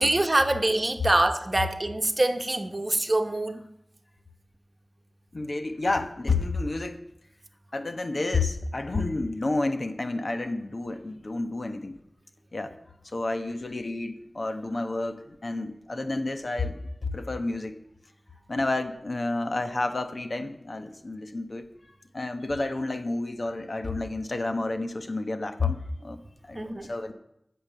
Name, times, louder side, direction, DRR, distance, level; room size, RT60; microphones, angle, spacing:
voice 1, 0.0-3.6 26.5-26.9, right 2 dB, 40° right, 1.1 m, -25 dB
voice 2, 5.3-7.0 7.7-12.0 12.5-12.7 13.0-17.8 18.5-21.7 22.1-26.2 26.4-27.1, left 2 dB, 60° left, 1.2 m, -30 dB
14.5 x 6.8 x 6.8 m
wide cardioid pair, 55°, 0 cm